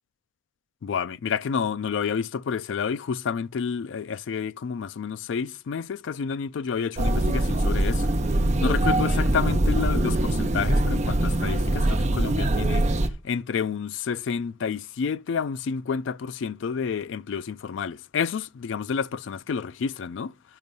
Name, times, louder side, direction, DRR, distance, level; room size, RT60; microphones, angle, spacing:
voice 1, 0.8-8.1 8.4-20.3, left 6 dB, 70° left, 0.3 m, -29 dB
sound 1, 7.0-13.1, right 1 dB, 35° right, 0.6 m, -23 dB
11.0 x 5.2 x 5.3 m
head